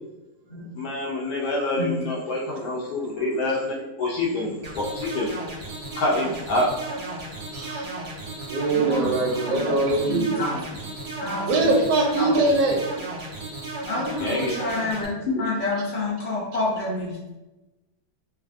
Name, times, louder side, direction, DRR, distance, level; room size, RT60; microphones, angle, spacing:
voice 1, 0.7-5.3 6.0-6.7 14.2-14.5, left 2 dB, 85° left, -3 dB, 1.1 m, -26 dB
sound 1, 4.6-15.0, right 2 dB, 40° right, 0.5 m, -34 dB
voice 2, 7.5-7.9 8.5-10.3 11.4-12.8, right 2 dB, 85° right, 1 dB, 1.1 m, -22 dB
voice 3, 8.7-10.5 11.2-11.7 12.2-12.3 13.9-17.2, left 2 dB, 50° left, -7 dB, 0.6 m, -28 dB
3.2 x 2.3 x 2.5 m, 1.0 s
omnidirectional pair, 1.6 m